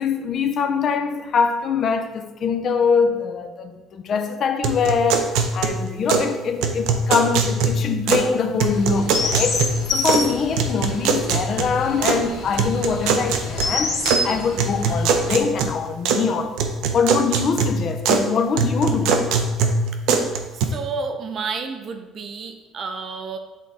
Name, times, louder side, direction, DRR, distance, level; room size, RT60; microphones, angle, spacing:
voice 1, 0.0-9.6 9.9-16.6 16.9-19.2, left 5 dB, 40° left, 0.5 m, -23 dB
sound 1, 4.6-6.3 6.6-8.3 8.6-10.3 10.6-12.2 12.6-14.2 14.6-16.3 16.6-18.3 18.6-20.6, right 4 dB, 85° right, 0.6 m, -22 dB
Chirp tweet, 8.7-15.3, left 3 dB, 80° left, 1.9 m, -28 dB
voice 2, 20.1-23.4, right 4 dB, 35° right, 0.6 m, -31 dB
8.1 x 3.6 x 4.1 m
cardioid pair, 160°, 0 cm